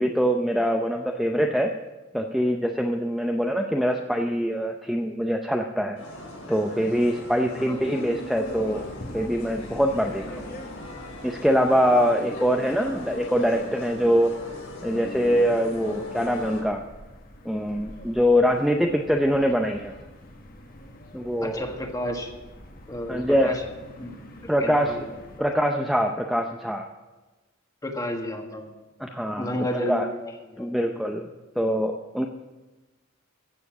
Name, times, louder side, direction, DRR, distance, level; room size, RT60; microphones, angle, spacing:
voice 1, 0.0-1.7 2.1-6.0 6.5-8.9 9.1-10.4 11.2-14.3 14.8-16.8 17.5-19.9 21.1-21.6 23.1-23.5 24.5-25.1 25.4-26.9 29.0-30.1 30.6-31.3 31.6-32.3, equal, ahead, 2 dB, 0.5 m, -24 dB
sound 1, 6.0-16.6, left 1 dB, 90° left, 4.1 m, -39 dB
voice 2, 7.5-7.9 21.4-22.3 22.9-23.6 24.0-24.1 24.4-25.5 27.8-28.7 29.4-30.7, equal, 15° left, 3 dB, 1.4 m, -32 dB
sound 2, 8.4-25.4, left 1 dB, 40° left, 1.4 m, -44 dB
15.0 x 6.9 x 7.3 m, 1.2 s
head